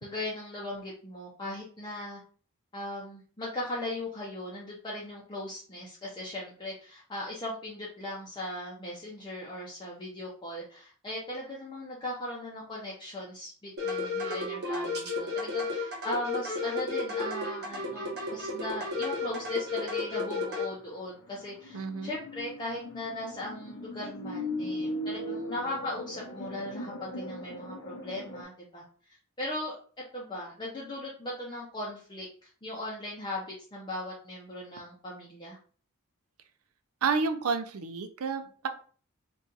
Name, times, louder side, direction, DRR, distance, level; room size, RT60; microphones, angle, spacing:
voice 1, 0.0-2.2 2.7-28.8 29.4-29.8 30.1-35.6, left 1 dB, 20° left, -5 dB, 0.6 m, -38 dB
sound 1, 13.8-20.7, left 3 dB, 50° right, 1.0 m, -32 dB
sound 2, 17.7-19.2 19.5-20.0 20.4-20.5 21.3-28.4, left 1 dB, 65° left, 0.6 m, -39 dB
voice 2, 21.7-22.2 37.0-38.7, right 5 dB, 80° right, 8 dB, 0.5 m, -30 dB
2.7 x 2.4 x 3.8 m, 0.42 s
head